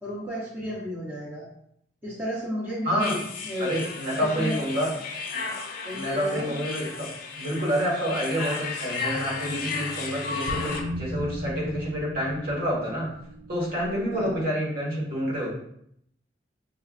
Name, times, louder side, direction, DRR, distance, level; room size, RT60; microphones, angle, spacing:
voice 1, 0.0-1.5 2.0-3.8 4.2-4.6 5.5-6.5 14.1-14.4, equal, 10° right, -7 dB, 0.6 m, -33 dB
voice 2, 2.8-3.2 3.6-4.9 5.3-5.4 5.9-7.1 7.4-13.1 13.5-15.5, equal, 50° right, -5 dB, 1.5 m, -28 dB
sound 1, 3.0-10.8, left 4 dB, 50° left, 0.5 m, -34 dB
sound 2, 9.2-14.5, equal, 75° right, 0.4 m, -38 dB
5.6 x 2.2 x 2.4 m, 0.71 s
head